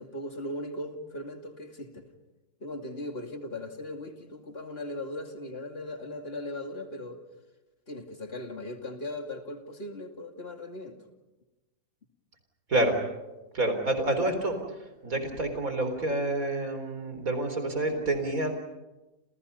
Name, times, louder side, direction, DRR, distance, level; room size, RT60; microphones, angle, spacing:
voice 1, 0.0-2.1 2.6-7.2 7.9-11.0, left 1 dB, 40° left, 5 dB, 2.7 m, -38 dB
voice 2, 13.5-14.6 15.0-18.5, right 2 dB, 60° right, 7 dB, 4.4 m, -28 dB
29.5 x 29.0 x 5.6 m, 1.1 s
omnidirectional pair, 1.7 m